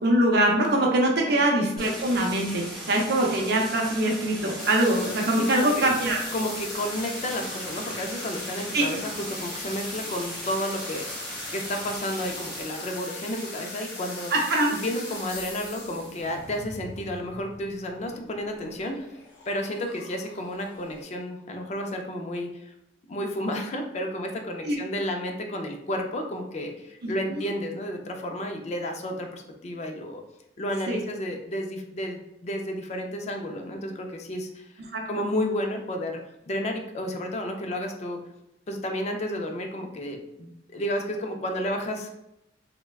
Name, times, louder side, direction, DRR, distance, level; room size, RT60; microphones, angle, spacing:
voice 1, 0.0-6.2 8.7-8.9 14.3-14.7 24.6-24.8 27.0-27.5 30.9-31.0 34.9-35.2, right 1 dB, 60° right, 0 dB, 0.6 m, -23 dB
Stream, 1.8-12.6, right 1 dB, 5° left, 0.9 m, -39 dB
sound 1, 4.6-21.0, left 2 dB, 60° left, 0.8 m, -40 dB
voice 2, 5.5-5.8 6.3-14.3 14.8-19.1 19.5-22.7 23.1-30.2 30.6-34.7 35.1-36.2 36.5-38.2 38.7-42.1, left 1 dB, 35° left, 4 dB, 0.4 m, -31 dB
3.3 x 2.1 x 2.3 m, 0.87 s
head